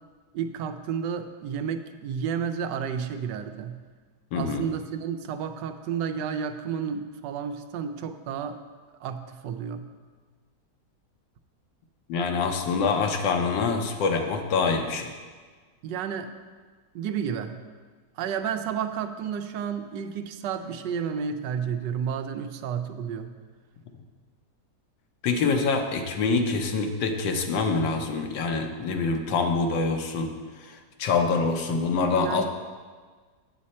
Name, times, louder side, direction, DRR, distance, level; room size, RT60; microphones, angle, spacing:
voice 1, 0.3-3.8 4.3-8.6 9.0-9.9 15.8-16.3 16.9-17.6 18.2-23.4 32.2-32.4, right 7 dB, 80° right, 8 dB, 1.2 m, -31 dB
voice 2, 4.3-4.7 12.1-15.1 25.2-32.4, left 4 dB, 85° left, 4 dB, 1.5 m, -25 dB
8.4 x 7.4 x 4.2 m, 1.5 s
omnidirectional pair, 2.0 m